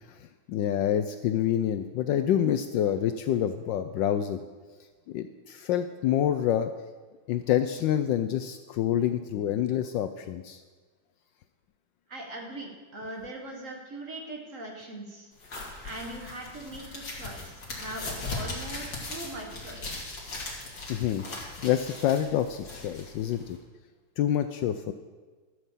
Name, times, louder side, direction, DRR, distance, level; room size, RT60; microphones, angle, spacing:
voice 1, 0.5-4.4 5.1-6.7 7.3-10.6 20.9-21.2 21.6-23.6 24.2-24.9, left 10 dB, 75° left, 9 dB, 1.1 m, -27 dB
voice 2, 12.1-15.3 15.8-20.1, right 2 dB, 40° right, 1 dB, 1.7 m, -41 dB
sound 1, 15.4-23.6, left 3 dB, 60° left, 3.0 m, -39 dB
13.0 x 6.1 x 7.3 m, 1.4 s
omnidirectional pair, 2.3 m